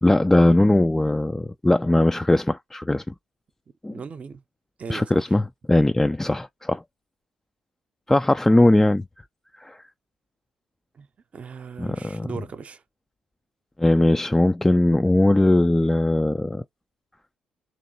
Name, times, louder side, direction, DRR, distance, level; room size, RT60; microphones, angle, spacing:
voice 1, 0.0-3.1 3.8-4.0 4.9-5.4 5.7-6.8 8.1-9.0 9.6-9.8 11.8-12.3 13.8-16.6, left 1 dB, 10° left, 0.3 m, -19 dB
voice 2, 3.9-4.4 4.8-5.3 10.9-11.1 11.3-12.8, right 5 dB, 45° right, 0.7 m, -38 dB
3.1 x 2.9 x 3.9 m
hypercardioid pair, 45°, 3 cm